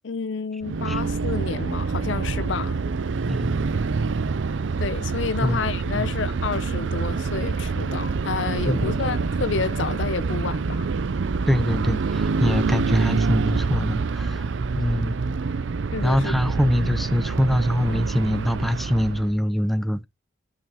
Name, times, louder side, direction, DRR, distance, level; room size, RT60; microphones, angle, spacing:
voice 1, 0.0-2.8 4.8-10.9 15.9-16.3, left 5 dB, 80° left, 0.6 m, -29 dB
sound 1, 0.6-19.4, right 4 dB, 80° right, 0.5 m, -26 dB
voice 2, 3.3-3.6 5.4-5.6 6.0-6.1 8.7-9.1 11.5-14.4 14.7-15.3 16.0-20.1, equal, ahead, 0.5 m, -24 dB
14.0 x 5.7 x 2.9 m
head